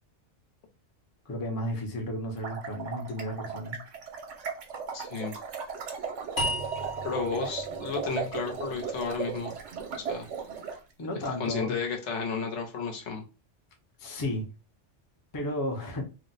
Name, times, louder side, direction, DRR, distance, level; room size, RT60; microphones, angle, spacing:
voice 1, 1.3-3.8 11.0-11.8 14.0-14.5 15.3-16.0, left 1 dB, 25° left, 0.5 m, -33 dB
sound 1, 2.4-10.8, right 6 dB, 75° right, 1.0 m, -37 dB
voice 2, 4.9-5.3 7.0-9.5 10.0-10.3 11.4-13.2, left 5 dB, 75° left, 1.0 m, -32 dB
sound 2, 6.4-9.6, equal, 45° left, 1.0 m, -36 dB
2.5 x 2.0 x 3.9 m
omnidirectional pair, 1.2 m